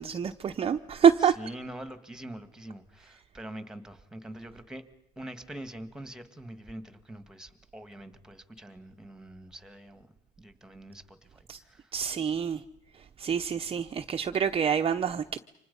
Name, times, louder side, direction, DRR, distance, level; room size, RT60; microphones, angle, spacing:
voice 1, 0.0-1.3 11.5-11.6 11.9-12.6 12.9-15.4, right 7 dB, 30° right, 0.8 m, -26 dB
voice 2, 1.2-4.9 5.2-11.9, right 1 dB, 5° right, 1.9 m, -44 dB
29.5 x 26.0 x 5.4 m
cardioid pair, 150°, 20 cm